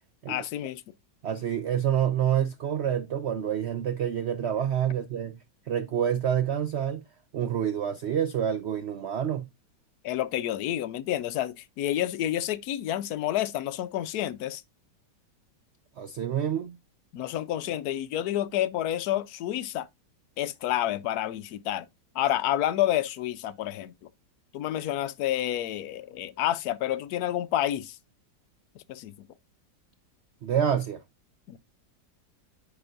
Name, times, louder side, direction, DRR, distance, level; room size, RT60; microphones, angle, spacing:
voice 1, 0.3-0.8 10.0-14.6 17.1-19.9 20.4-21.9 22.1-23.9 24.5-28.0 28.9-29.3 31.5-31.6, left 12 dB, 70° left, 1.1 m, -29 dB
voice 2, 1.2-5.3 5.7-7.0 7.3-9.5 16.0-16.8 30.4-31.0, right 9 dB, 85° right, 0.6 m, -27 dB
9.7 x 5.2 x 2.5 m
omnidirectional pair, 1.9 m